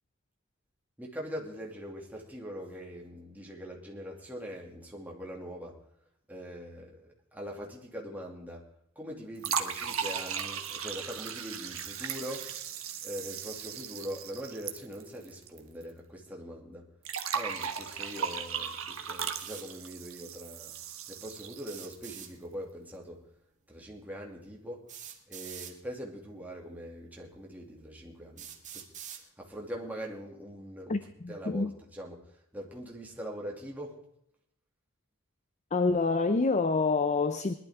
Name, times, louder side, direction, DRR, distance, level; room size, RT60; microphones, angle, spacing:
voice 1, 1.0-5.8 6.3-8.7 9.0-12.5 13.0-16.9 17.3-20.7 21.1-23.2 23.7-24.9 25.3-28.9 29.4-32.2 32.5-34.0, equal, 10° right, 2.5 m, -42 dB
sound 1, 9.4-15.6 15.8-15.9 17.1-22.1, right 7 dB, 80° right, 1.2 m, -37 dB
sound 2, 19.3-19.7 21.6-22.3 23.7-23.8 24.9-25.7 26.7-26.8 27.5-27.6 28.4-29.2, right 9 dB, 35° right, 1.6 m, -44 dB
voice 2, 30.9-31.7 35.7-37.5, left 3 dB, 35° left, 0.6 m, -27 dB
20.5 x 12.0 x 3.7 m
head